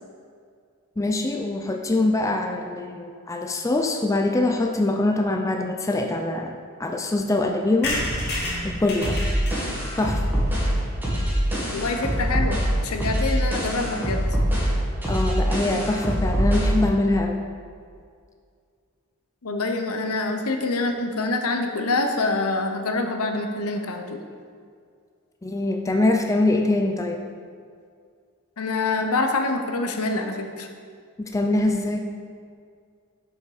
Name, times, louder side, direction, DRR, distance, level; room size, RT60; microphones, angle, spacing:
voice 1, 1.0-6.5 6.8-8.0 8.6-9.2 10.0-10.2 15.1-17.4 25.4-27.2 31.2-32.0, left 2 dB, 15° left, 3 dB, 0.4 m, -23 dB
sound 1, 7.8-11.5 11.9-12.0 12.2-12.3 12.5-12.6 12.8-13.1, left 1 dB, 45° left, 1.7 m, -31 dB
sound 2, 9.0-16.8, equal, 10° right, 1.8 m, -24 dB
voice 2, 11.7-14.2 19.4-24.2 28.6-30.7, left 3 dB, 75° left, 5 dB, 0.8 m, -26 dB
6.7 x 6.4 x 4.8 m, 2.2 s
head